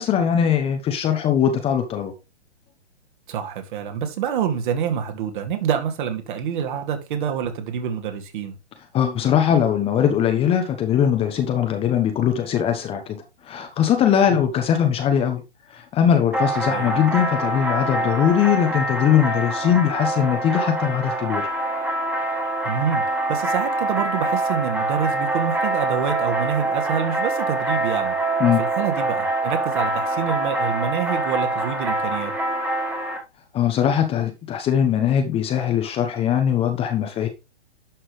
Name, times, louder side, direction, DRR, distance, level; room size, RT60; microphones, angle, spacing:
voice 1, 0.0-2.1 8.9-15.4 15.7-21.5 28.4-28.6 33.5-37.3, left 9 dB, 15° left, 1.1 m, -21 dB
voice 2, 3.3-8.5 14.3-14.4 16.7-17.0 22.6-23.0 23.3-28.1 28.6-32.3, right 8 dB, 45° right, 2.5 m, -26 dB
sound 1, 16.3-33.2, right 2 dB, 5° right, 1.7 m, -25 dB
11.5 x 5.8 x 3.3 m
figure-of-eight pair, 125°, 34 cm